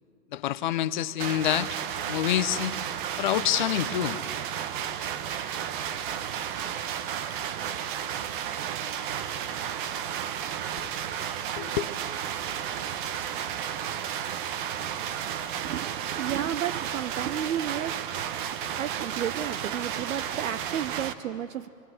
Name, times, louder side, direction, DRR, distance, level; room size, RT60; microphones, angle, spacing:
voice 1, 0.3-1.7 2.1-2.8 3.2-4.2 11.6-11.9, left 13 dB, 30° left, 15 dB, 0.6 m, -27 dB
sound 1, 1.2-21.1, right 9 dB, 30° right, 0.9 m, -33 dB
voice 2, 15.6-21.7, right 10 dB, 55° right, 12 dB, 0.7 m, -33 dB
26.0 x 21.5 x 7.6 m, 2.6 s
figure-of-eight pair, 120°, 48 cm